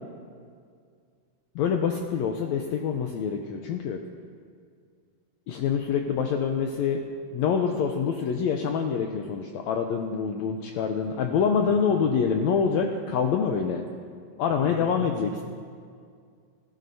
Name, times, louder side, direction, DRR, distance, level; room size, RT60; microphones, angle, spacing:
voice 1, 1.5-4.0 5.5-7.0 7.3-13.8 14.4-15.4, left 6 dB, 80° left, 3 dB, 1.6 m, -26 dB
voice 2, 11.6-12.0 14.5-15.4, left 2 dB, 65° left, -7 dB, 4.4 m, -40 dB
19.0 x 14.5 x 2.7 m, 2.2 s
omnidirectional pair, 3.8 m